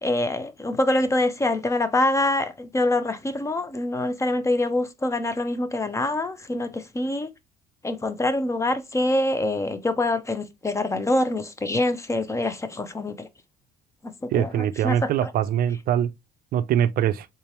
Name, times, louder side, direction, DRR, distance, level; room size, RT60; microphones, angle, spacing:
voice 1, 0.0-7.3 7.8-13.3 14.0-15.3, left 2 dB, 15° left, 0.5 m, -25 dB
voice 2, 14.3-16.1 16.5-17.3, right 10 dB, 60° right, 0.4 m, -23 dB
3.6 x 2.8 x 3.1 m
cardioid pair, 110°, 17 cm